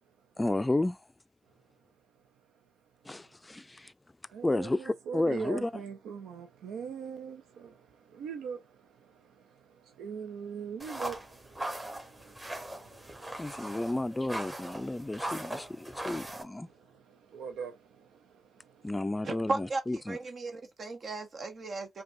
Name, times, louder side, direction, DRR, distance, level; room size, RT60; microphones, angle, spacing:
voice 1, 0.4-1.0 3.1-3.9 4.4-5.7 13.4-16.7 18.8-20.2, left 2 dB, 20° left, 0.3 m, -32 dB
voice 2, 4.3-13.7 15.3-15.4 16.7-18.9, right 6 dB, 90° right, 0.4 m, -43 dB
sound 1, 10.8-16.4, right 1 dB, 20° right, 1.3 m, -40 dB
voice 3, 19.2-22.0, right 3 dB, 60° right, 0.7 m, -36 dB
5.0 x 2.3 x 2.5 m
supercardioid pair, 55°, 0 cm